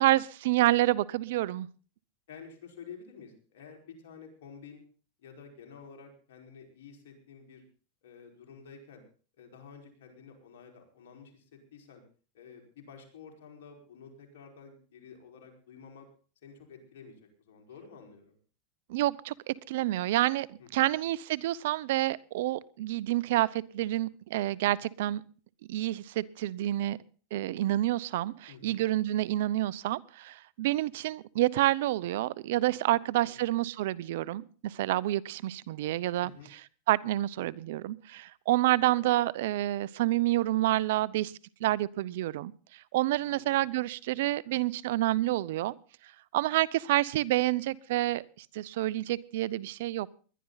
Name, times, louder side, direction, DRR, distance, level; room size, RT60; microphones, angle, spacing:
voice 1, 0.0-1.7 18.9-25.2 25.7-27.0 27.3-36.6 36.9-41.3 41.6-45.7 46.3-50.1, right 15 dB, 70° right, 22 dB, 0.7 m, -28 dB
voice 2, 2.3-4.8 5.2-7.6 8.0-9.0 9.4-12.0 12.3-16.1 16.4-18.4 20.6-20.9 28.5-28.8 33.2-33.4 36.2-36.5 43.2-43.8, left 6 dB, 75° left, 2 dB, 4.9 m, -50 dB
20.5 x 11.5 x 4.0 m, 0.39 s
hypercardioid pair, 115°, 0 cm